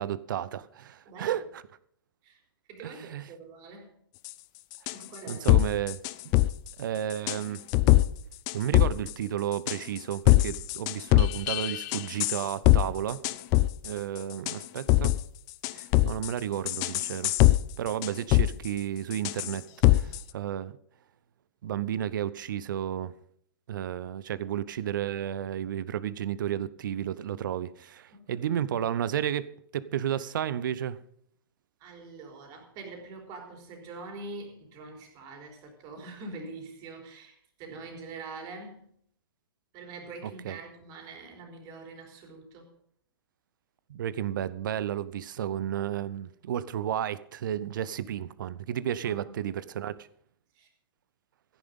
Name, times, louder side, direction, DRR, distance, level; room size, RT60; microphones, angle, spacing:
voice 1, 0.0-1.4 2.8-3.2 5.3-6.0 6.2-6.4 6.8-7.6 8.5-13.2 13.8-15.1 15.7-17.3 17.8-19.6 19.9-20.8 21.6-23.1 23.7-31.0 40.4-40.6 43.9-50.1, right 10 dB, 55° right, 0.8 m, -32 dB
voice 2, 1.1-1.5 2.2-2.4 2.7-3.9 4.9-5.5 19.8-20.1 28.1-28.6 31.8-38.9 39.7-42.7 49.0-49.3 50.5-50.7, right 3 dB, 30° right, 3.8 m, -44 dB
sound 1, 4.3-4.4 4.9-5.0 5.3-6.5 7.1-7.4 7.7-8.1 8.5-9.1 9.7-10.0 10.3-12.8 13.1-13.9 14.5-15.2 15.6-16.3 16.7-17.6 17.9-18.5 19.1-19.5 19.8-20.2, left 18 dB, 30° left, 0.5 m, -22 dB
15.0 x 10.5 x 5.4 m
figure-of-eight pair, 115°, 13 cm